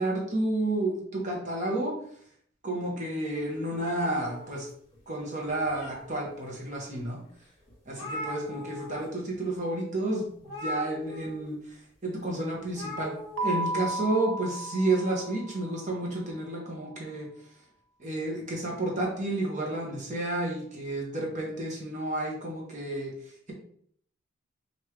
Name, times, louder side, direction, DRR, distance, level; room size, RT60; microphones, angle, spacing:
voice 1, 0.0-1.9 2.6-4.7 5.1-7.2 7.9-11.6 12.0-13.1 13.4-17.3 18.0-23.1, right 2 dB, 35° right, -2 dB, 1.2 m, -31 dB
sound 1, 3.8-5.0 5.4-6.3 6.9-7.0 7.4-7.5 7.7-9.1 9.3-9.5 10.4-11.5 12.7-13.5, left 1 dB, 20° left, 1.8 m, -39 dB
Keyboard (musical), 13.4-15.9, right 1 dB, 65° right, 0.4 m, -34 dB
5.4 x 2.7 x 3.0 m, 0.63 s
head